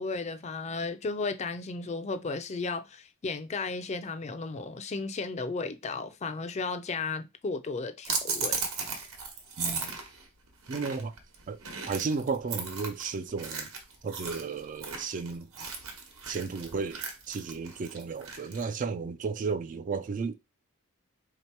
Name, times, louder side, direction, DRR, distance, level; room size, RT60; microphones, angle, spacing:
voice 1, 0.0-8.6, left 3 dB, 30° left, 0.4 m, -34 dB
sound 1, 8.0-18.7, right 5 dB, 70° right, 1.1 m, -36 dB
voice 2, 9.6-9.9 10.7-11.1 11.5-11.6 11.9-13.7 14.0-15.7 16.3-17.0 17.3-20.4, right 5 dB, 35° right, 0.3 m, -33 dB
3.8 x 2.9 x 4.4 m
head